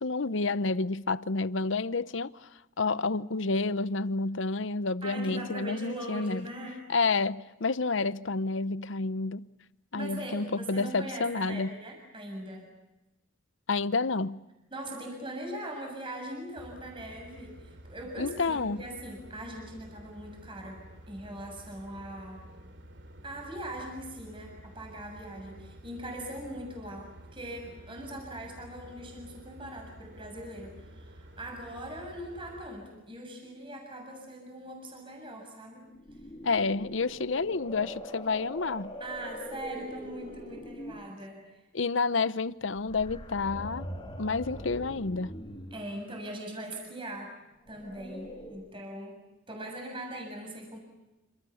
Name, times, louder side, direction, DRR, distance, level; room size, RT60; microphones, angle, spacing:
voice 1, 0.0-2.5 2.8-6.5 6.9-9.5 9.9-11.7 13.7-14.4 18.2-18.8 36.4-38.9 41.7-43.9 44.2-45.3, left 3 dB, 75° left, 0.9 m, -29 dB
voice 2, 5.0-6.8 9.9-12.7 14.7-22.5 23.2-35.9 37.0-37.2 39.0-41.4 45.7-47.4 47.7-50.8, right 1 dB, 25° right, 7.3 m, -41 dB
sound 1, 16.6-32.7, equal, 60° right, 3.2 m, -50 dB
sound 2, 36.0-41.1 42.8-45.9 47.6-48.7, equal, 25° left, 5.0 m, -42 dB
28.5 x 28.0 x 7.2 m
head